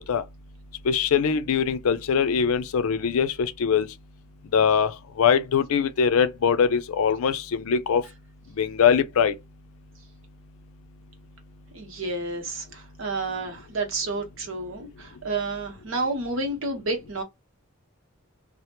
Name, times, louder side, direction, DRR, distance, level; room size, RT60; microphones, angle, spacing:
voice 1, 0.9-3.9 4.5-4.9 5.2-8.0 8.6-9.3, left 7 dB, 75° left, 0.4 m, -22 dB
voice 2, 11.7-17.2, right 3 dB, 65° right, 0.8 m, -30 dB
2.1 x 2.0 x 2.8 m
head